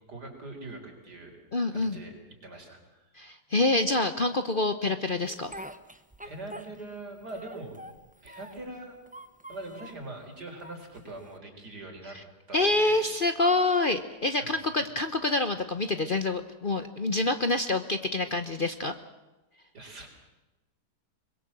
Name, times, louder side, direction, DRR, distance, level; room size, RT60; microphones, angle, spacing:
voice 1, 0.1-1.4 1.7-2.1 2.4-3.1 6.2-7.8 8.2-9.0 9.5-12.2 12.5-13.0 19.7-20.1, right 2 dB, 75° right, 2 dB, 4.9 m, -42 dB
voice 2, 1.5-2.0 3.1-5.5 12.5-18.9, left 2 dB, 40° left, 9 dB, 0.9 m, -27 dB
Speech, 5.2-7.0 7.3-8.7 9.1-10.0 10.6-11.4, right 1 dB, 10° right, 0.5 m, -45 dB
23.5 x 21.5 x 7.6 m, 1.1 s
omnidirectional pair, 1.8 m